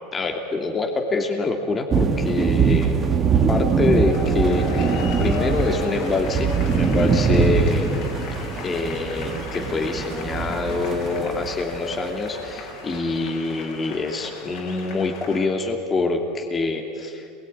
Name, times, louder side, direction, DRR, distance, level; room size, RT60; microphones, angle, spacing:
voice 1, 0.1-3.0 3.3-7.9 8.6-17.3, left 3 dB, 20° left, 2 dB, 2.9 m, -25 dB
sound 1, 1.9-12.0, right 5 dB, 30° right, 2.1 m, -22 dB
sound 2, 3.8-15.4, left 4 dB, 60° left, 4.7 m, -36 dB
27.0 x 22.0 x 9.9 m, 2.5 s
supercardioid pair, 120°, 0 cm